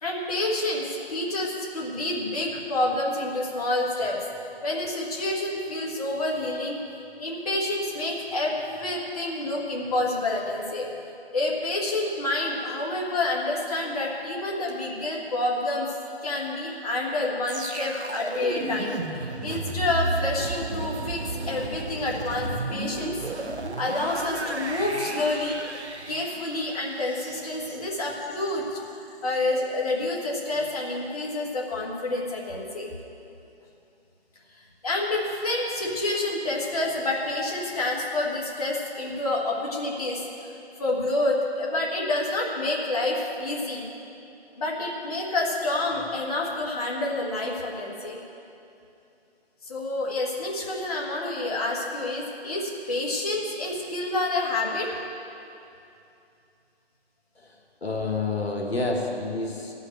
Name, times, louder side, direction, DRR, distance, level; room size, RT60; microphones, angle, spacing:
voice 1, 0.0-4.2 4.6-10.9 11.3-15.9 16.2-23.1 23.4-25.6 26.0-32.9 34.6-40.2 40.8-43.8 44.6-48.2 49.6-55.0, left 2 dB, 35° left, -3 dB, 1.6 m, -28 dB
sound 1, 17.5-28.6 28.9-29.1, right 2 dB, 90° right, 1.0 m, -33 dB
voice 2, 57.8-59.7, left 3 dB, 70° left, 1 dB, 1.6 m, -28 dB
11.5 x 6.5 x 8.8 m, 2.7 s
figure-of-eight pair, 155°, 32 cm